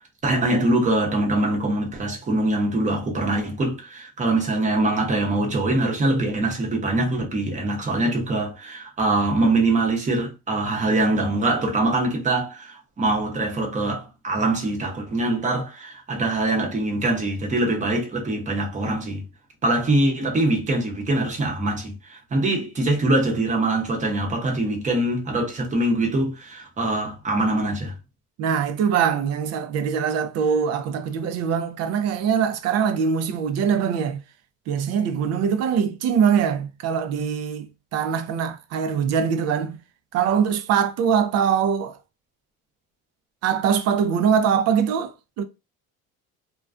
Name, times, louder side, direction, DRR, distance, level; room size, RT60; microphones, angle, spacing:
voice 1, 0.2-19.3 19.6-28.0, right 2 dB, 20° right, 0.8 m, -23 dB
voice 2, 28.4-34.2 34.7-39.8 40.1-42.0 43.4-45.4, right 7 dB, 50° right, 0.4 m, -23 dB
2.2 x 2.2 x 2.4 m
cardioid pair, 125°, 33 cm